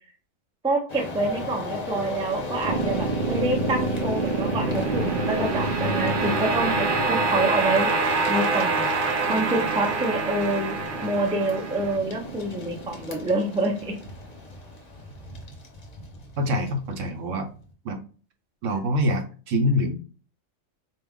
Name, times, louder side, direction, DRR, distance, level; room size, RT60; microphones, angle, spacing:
voice 1, 0.6-7.9 8.3-8.9 9.3-10.7 11.0-13.9, right 2 dB, 10° right, 2 dB, 0.3 m, -27 dB
sound 1, 0.9-17.7, left 3 dB, 40° left, 0.7 m, -36 dB
sound 2, 2.6-13.8, right 3 dB, 55° right, 0.6 m, -26 dB
voice 2, 16.4-17.5 17.8-18.0 18.6-19.9, equal, 70° right, 6 dB, 1.0 m, -25 dB
4.3 x 2.3 x 3.5 m, 0.39 s
omnidirectional pair, 1.4 m